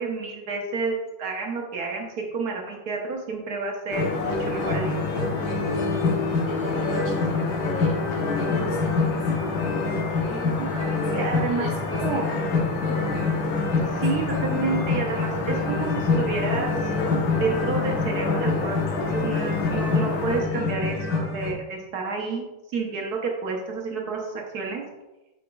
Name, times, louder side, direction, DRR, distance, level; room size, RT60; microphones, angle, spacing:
voice 1, 0.0-4.9 10.6-11.7 11.9-12.3 13.9-16.9 17.3-24.8, right 4 dB, 55° right, 0 dB, 1.2 m, -30 dB
sound 1, 3.9-20.4, left 4 dB, 75° left, 1.6 m, -31 dB
sound 2, 3.9-21.5, left 3 dB, 60° left, 1.4 m, -26 dB
voice 2, 6.3-9.2 9.9-11.1 11.5-13.1 13.7-14.2, left 1 dB, 45° left, -7 dB, 1.3 m, -37 dB
9.0 x 5.0 x 2.3 m, 1.0 s
omnidirectional pair, 2.3 m